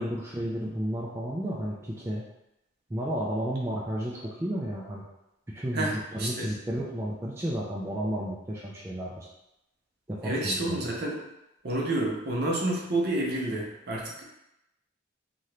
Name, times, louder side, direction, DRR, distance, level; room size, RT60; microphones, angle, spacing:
voice 1, 0.0-2.2 2.9-5.0 5.5-9.3 10.1-10.8, equal, 15° right, -5 dB, 0.3 m, -32 dB
voice 2, 10.2-11.2 11.6-14.1, right 1 dB, 50° right, -2 dB, 0.7 m, -29 dB
2.8 x 2.5 x 3.2 m, 0.89 s
head